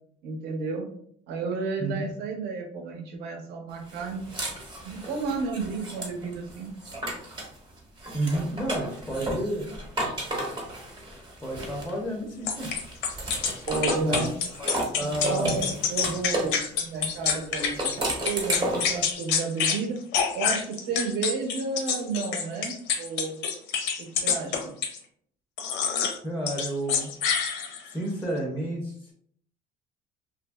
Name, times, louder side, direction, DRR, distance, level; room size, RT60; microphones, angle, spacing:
voice 1, 0.2-0.9 1.3-4.2 4.8-6.7 13.7-14.3 15.0-20.0 20.3-23.4 24.0-24.7, right 4 dB, 65° right, 2 dB, 0.6 m, -32 dB
voice 2, 1.8-2.1 8.1-9.7 11.4-12.7 14.1-14.3 14.6-15.5 26.2-27.1 27.9-29.1, right 1 dB, 5° left, -1 dB, 0.4 m, -31 dB
sound 1, 3.9-7.6 8.0-12.1 12.6-16.6 17.6-19.0, right 1 dB, 25° right, 0.7 m, -33 dB
sound 2, 12.5-18.0 18.3-19.8 20.1-25.0 25.6-26.2 26.5-27.9, left 7 dB, 80° left, 0.6 m, -27 dB
2.7 x 2.5 x 2.2 m, 0.63 s
cardioid pair, 140°, 18 cm